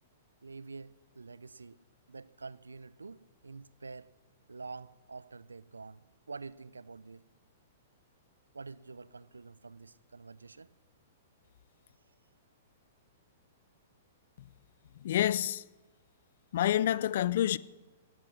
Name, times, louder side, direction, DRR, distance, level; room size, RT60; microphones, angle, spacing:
voice 1, 0.4-1.8 2.1-4.1 4.5-7.2 8.5-10.7, right 4 dB, 85° right, 0.5 m, -47 dB
voice 2, 15.0-15.6 16.5-17.6, left 11 dB, 55° left, 0.5 m, -28 dB
18.5 x 12.0 x 6.0 m
figure-of-eight pair, 110°, 0 cm